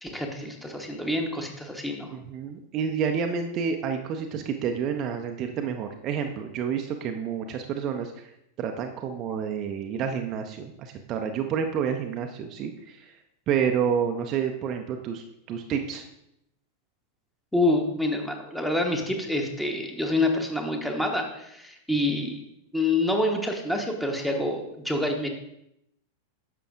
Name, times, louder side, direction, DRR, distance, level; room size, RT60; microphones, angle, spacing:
voice 1, 0.0-2.1 17.5-22.4 22.7-25.3, left 1 dB, 5° left, 3 dB, 1.1 m, -27 dB
voice 2, 2.1-8.2 8.6-13.1 13.5-16.0, right 7 dB, 35° right, 4 dB, 0.5 m, -29 dB
10.0 x 6.8 x 2.5 m, 0.80 s
figure-of-eight pair, 90°, 0 cm